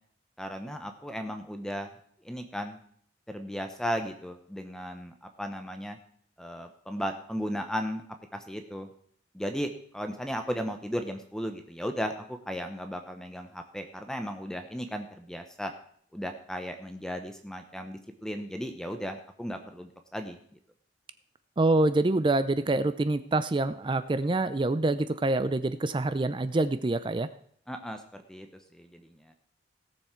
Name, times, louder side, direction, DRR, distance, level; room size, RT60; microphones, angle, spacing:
voice 1, 0.4-1.9 2.2-2.8 3.3-6.0 6.4-8.0 8.3-8.9 9.3-15.7 16.1-20.4 27.7-28.5 28.7-29.0, equal, 5° left, 6 dB, 0.7 m, -35 dB
voice 2, 21.6-27.3, right 2 dB, 25° right, 13 dB, 0.4 m, -26 dB
17.0 x 7.0 x 4.4 m, 0.62 s
head